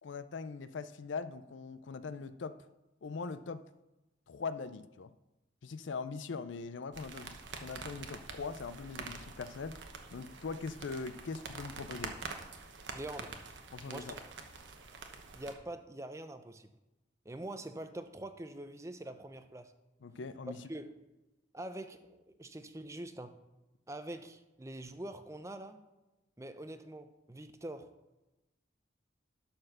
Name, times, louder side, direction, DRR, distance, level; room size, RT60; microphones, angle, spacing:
voice 1, 0.0-2.6 3.0-3.6 4.3-5.1 5.6-9.8 10.1-12.2 13.7-14.1 20.0-20.6, left 4 dB, 85° left, 0.5 m, -41 dB
sound 1, 6.9-15.5, right 4 dB, 80° right, 1.1 m, -46 dB
voice 2, 12.9-13.4 13.9-14.2 15.3-16.7 17.2-19.7 20.7-20.9 21.5-23.3 23.9-25.8 26.4-27.9, right 1 dB, 15° right, 0.5 m, -44 dB
11.5 x 4.4 x 6.6 m
head